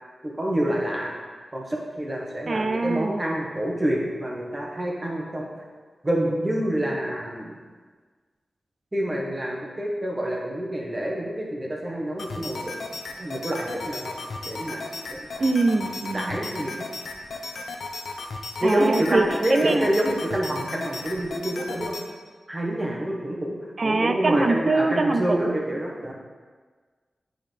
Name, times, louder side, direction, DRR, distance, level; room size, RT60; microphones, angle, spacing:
voice 1, 0.2-1.1 1.5-5.5 6.0-7.5 8.9-12.6 13.2-14.1 14.4-15.5 16.1-16.9 18.6-21.9 22.5-23.6 23.8-26.1, right 1 dB, 20° right, -2 dB, 1.2 m, -27 dB
voice 2, 2.5-3.2 15.4-16.4 18.6-19.9 23.8-25.5, right 3 dB, 45° right, 7 dB, 0.4 m, -23 dB
sound 1, 12.2-22.0, left 3 dB, 85° left, 0.6 m, -35 dB
9.8 x 3.8 x 3.4 m, 1.5 s
wide cardioid pair, 125°, 0 cm